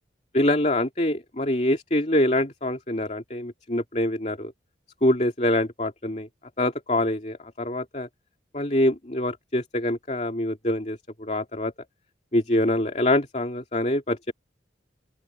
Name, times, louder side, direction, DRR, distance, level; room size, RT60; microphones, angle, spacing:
voice 1, 0.3-4.5 5.0-6.3 6.6-8.1 8.5-11.7 12.3-14.3, left 1 dB, 35° left, 2.7 m, -25 dB
open air
head